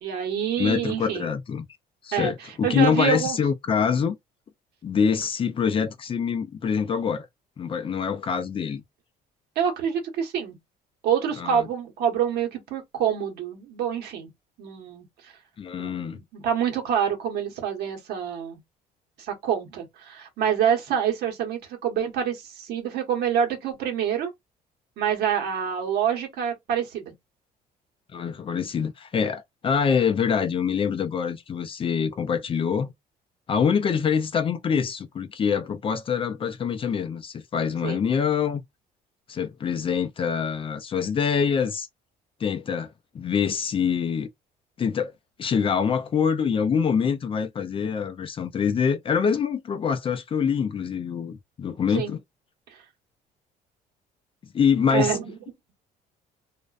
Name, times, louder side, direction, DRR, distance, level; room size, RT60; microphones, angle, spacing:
voice 1, 0.0-1.3 2.1-3.4 9.5-10.6 11.0-14.3 14.6-15.3 15.8-18.6 19.2-24.3 25.0-27.1 37.8-38.0 51.9-52.1 54.9-55.3, right 8 dB, 75° right, 1.1 m, -27 dB
voice 2, 0.6-1.7 2.0-4.2 4.8-7.3 7.6-8.8 11.4-11.7 15.6-16.2 28.1-32.9 33.5-38.6 39.3-41.9 42.4-42.9 43.1-44.3 44.8-45.1 45.4-52.2 54.5-55.2, left 6 dB, 30° left, 0.4 m, -25 dB
2.4 x 2.1 x 2.4 m
cardioid pair, 110°, 17 cm